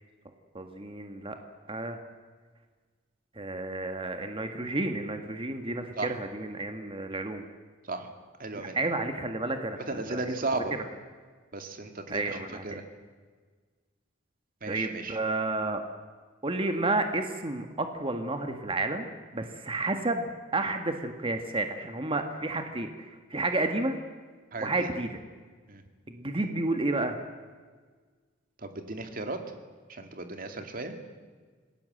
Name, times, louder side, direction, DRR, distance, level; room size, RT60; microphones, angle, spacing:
voice 1, 0.5-1.4 1.7-2.0 3.3-7.4 8.5-10.8 12.1-12.8 14.7-15.8 16.4-19.1 19.3-24.0 24.6-25.2 26.1-27.2, right 2 dB, 30° right, 6 dB, 1.7 m, -31 dB
voice 2, 8.4-8.8 9.9-10.7 11.5-12.2 12.6-12.8 14.6-15.2 24.5-24.9 25.7-25.8 28.6-29.4 29.9-30.9, right 3 dB, 45° right, 6 dB, 2.5 m, -35 dB
27.5 x 19.5 x 7.9 m, 1.5 s
head